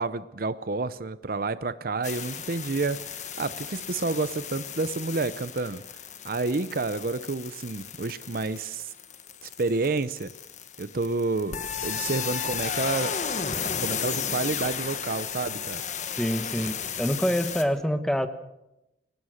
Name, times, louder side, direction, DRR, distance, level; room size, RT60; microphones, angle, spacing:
voice 1, 0.0-5.8 6.2-8.9 9.4-10.3 10.8-13.2 13.8-15.8, right 3 dB, 55° right, 15 dB, 0.7 m, -29 dB
sound 1, 2.0-17.6, left 7 dB, 45° left, 1.6 m, -34 dB
voice 2, 16.2-18.3, equal, 5° left, 10 dB, 1.2 m, -26 dB
23.5 x 18.5 x 6.5 m, 0.90 s
head